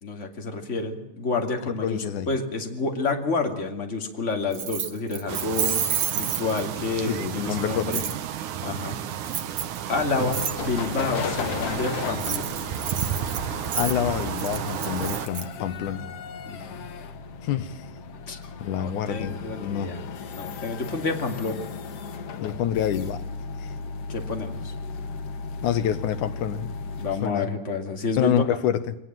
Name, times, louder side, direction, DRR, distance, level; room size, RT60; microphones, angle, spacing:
voice 1, 0.0-5.8 6.1-8.0 8.6-9.0 9.9-12.6 16.5-16.8 18.3-18.4 18.8-20.0 20.4-21.6 24.1-24.7 27.0-28.4, left 3 dB, 25° left, 4 dB, 2.6 m, -29 dB
voice 2, 1.8-2.3 7.1-8.0 13.7-16.1 17.4-17.8 18.6-19.9 22.4-23.2 23.6-23.7 25.6-26.7 27.2-27.5 28.2-29.0, left 10 dB, 75° left, 12 dB, 2.5 m, -27 dB
Keys jangling, 4.5-6.9 7.9-8.2 9.2-9.8 10.3-10.6 12.1-15.4, right 8 dB, 50° right, 2.1 m, -29 dB
sound 1, 5.3-15.3, right 9 dB, 70° right, 2.5 m, -32 dB
sound 2, 9.9-27.3, left 5 dB, 55° left, 2.1 m, -36 dB
23.0 x 19.0 x 7.6 m, 0.87 s
omnidirectional pair, 3.7 m